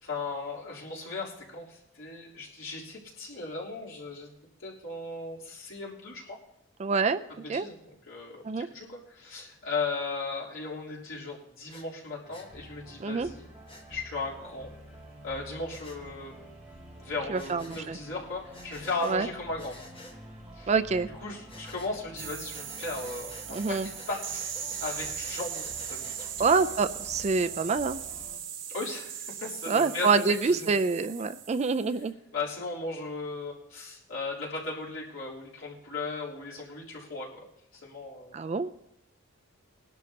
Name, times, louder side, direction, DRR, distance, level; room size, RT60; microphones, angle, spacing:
voice 1, 0.0-4.3 4.6-6.4 7.5-13.5 13.9-14.7 15.2-16.5 17.0-19.7 20.5-20.7 21.1-24.4 24.8-26.6 28.7-30.7 32.3-37.4 37.7-38.3, left 3 dB, 75° left, -5 dB, 3.4 m, -37 dB
voice 2, 6.8-7.2 7.5-7.7 8.4-8.7 13.0-13.3 17.3-18.0 19.0-19.3 20.7-21.1 23.5-23.9 26.4-28.0 29.7-32.1 38.3-38.7, right 4 dB, 30° right, 12 dB, 0.3 m, -26 dB
Breathing, 11.7-11.9 12.3-12.5 13.7-13.9 15.7-16.0 17.4-17.9 18.5-19.2 19.6-20.2 21.5-21.9 22.5-26.3, left 1 dB, 25° left, 1.5 m, -50 dB
sound 1, 12.2-28.4, right 1 dB, 5° right, 3.2 m, -49 dB
sound 2, 22.2-32.0, right 8 dB, 65° right, 1.3 m, -39 dB
20.0 x 11.5 x 2.8 m, 0.84 s
head